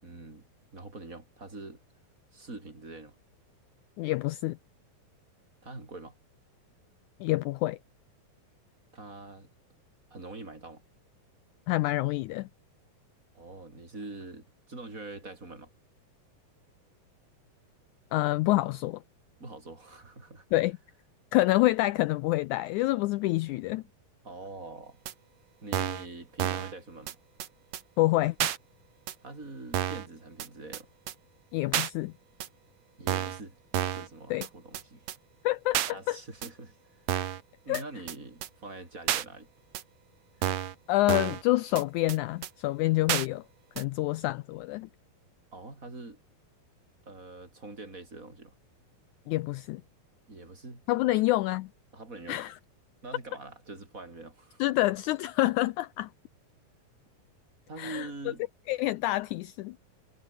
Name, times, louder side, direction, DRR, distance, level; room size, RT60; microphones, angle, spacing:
voice 1, 0.0-1.8 2.3-3.2 5.6-6.2 8.9-9.5 10.1-10.8 13.3-15.7 19.4-20.5 24.2-25.0 25.6-27.2 29.2-30.9 33.0-33.6 33.9-35.1 35.9-37.0 37.6-39.5 45.5-46.2 47.1-48.5 50.3-50.8 51.1-51.2 51.9-52.4 53.0-54.6 57.7-58.4, right 2 dB, 20° right, 5.9 m, -44 dB
voice 2, 4.0-4.6 7.2-7.8 11.7-12.5 18.1-19.0 20.5-20.8 21.3-23.8 28.0-28.5 31.5-32.1 34.3-34.5 35.4-36.2 37.7-37.8 40.9-43.4 43.8-44.9 49.3-49.8 50.9-51.7 52.3-52.5 54.6-56.1 57.8-58.1 58.7-59.8, left 18 dB, 85° left, 1.7 m, -27 dB
sound 1, 25.1-25.2 25.7-26.1 26.4-26.7 27.1-27.2 27.4-27.5 27.7-27.8 28.4-28.6 29.1-29.2 29.7-30.1 30.4-30.5 30.7-30.8 31.1-31.2 31.7-31.9 32.4-32.5 33.1-33.4 33.7-34.1 34.4-34.5 34.7-34.8 35.1-35.2 35.7-35.9 36.4-36.5 37.1-37.4 37.7-37.8 38.1-38.2 38.4-38.5 39.1-39.2 39.7-39.8 40.4-40.7 41.1-41.4 41.8-41.9 42.1-42.2 42.4-42.5 43.1-43.3 43.8-43.9, right 11 dB, 60° right, 2.1 m, -30 dB
omnidirectional pair, 4.0 m